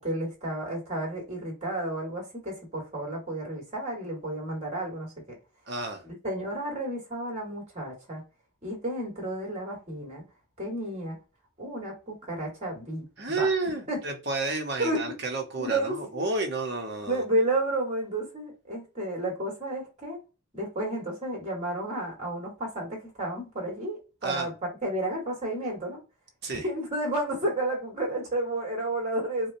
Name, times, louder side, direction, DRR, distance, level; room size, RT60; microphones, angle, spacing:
voice 1, 0.0-5.4 6.0-8.2 8.6-10.2 10.6-11.2 11.6-13.5 13.9-14.0 14.8-15.0 15.6-16.2 17.1-20.2 20.5-26.0 26.5-29.5, right 1 dB, 30° right, 1.9 m, -31 dB
voice 2, 5.7-6.0 13.2-17.2 24.2-24.5 26.4-26.6, right 3 dB, 50° right, 1.1 m, -31 dB
4.8 x 2.3 x 2.7 m
head